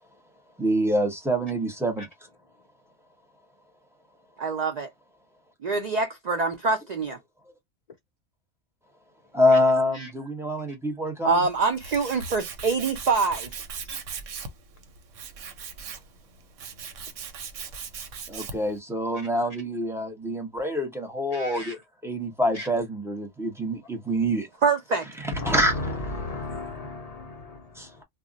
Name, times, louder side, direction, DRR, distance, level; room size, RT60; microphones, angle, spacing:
voice 1, 0.6-2.1 9.3-11.4 18.3-24.5 25.2-26.0 27.8-27.9, equal, 5° right, 0.5 m, -26 dB
voice 2, 4.4-4.9 5.6-7.2 11.2-13.6 24.6-25.1, right 4 dB, 65° right, 0.4 m, -25 dB
Tools, 11.3-18.8, right 6 dB, 85° right, 1.0 m, -39 dB
voice 3, 21.3-21.8 22.5-22.7 25.3-28.0, left 2 dB, 70° left, 0.3 m, -35 dB
2.4 x 2.0 x 3.7 m
omnidirectional pair, 1.3 m